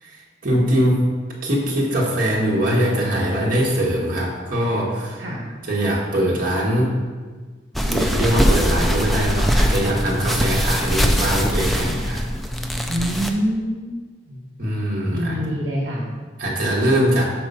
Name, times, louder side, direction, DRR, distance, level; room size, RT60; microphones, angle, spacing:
voice 1, 0.0-1.1 1.4-5.2 5.7-7.0 7.8-12.2 14.6-15.4 16.4-17.3, equal, 50° right, -5 dB, 1.3 m, -21 dB
sound 1, 7.7-13.3, equal, ahead, 0.3 m, -21 dB
voice 2, 12.9-14.0 14.2-14.5 15.1-16.0, equal, 70° right, -4 dB, 1.2 m, -25 dB
4.8 x 4.5 x 5.5 m, 1.4 s
head